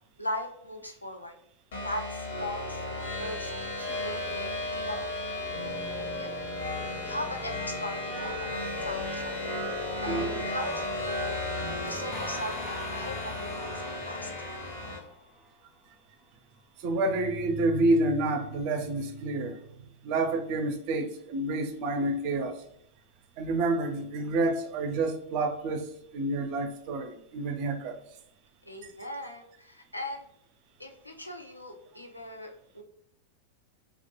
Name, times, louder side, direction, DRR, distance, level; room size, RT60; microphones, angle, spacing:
voice 1, 0.2-1.3 1.8-5.0 6.0-6.3 7.0-9.4 10.0-11.4 11.9-13.3 13.6-14.3 28.7-30.3 30.8-32.8, left 1 dB, 85° left, 0.4 m, -39 dB
sound 1, 1.7-15.0, left 2 dB, 65° left, 0.7 m, -34 dB
voice 2, 10.1-10.4 16.8-19.6 20.0-22.6 23.4-25.9 26.1-28.0, right 2 dB, 45° right, 0.4 m, -28 dB
sound 2, 12.1-15.8, left 2 dB, 20° left, 0.5 m, -44 dB
2.1 x 2.0 x 2.9 m
figure-of-eight pair, 90°, 0 cm